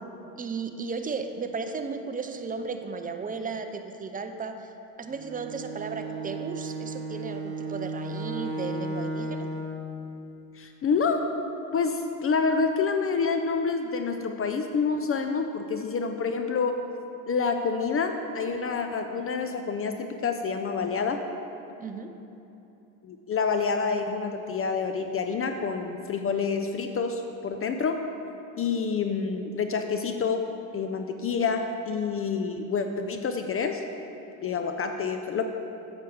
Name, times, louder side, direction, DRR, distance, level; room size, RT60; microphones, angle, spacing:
voice 1, 0.3-4.7 5.0-9.5 21.8-22.2, right 4 dB, 20° right, 7 dB, 0.5 m, -35 dB
Bowed string instrument, 5.1-9.8, right 2 dB, 75° right, 1.1 m, -34 dB
voice 2, 10.6-11.4 11.7-16.8 17.3-21.2 23.0-28.1 28.6-30.4 30.7-33.8 34.4-35.4, left 5 dB, 35° left, 6 dB, 0.5 m, -28 dB
8.3 x 6.6 x 4.6 m, 2.9 s
cardioid pair, 100°, 40 cm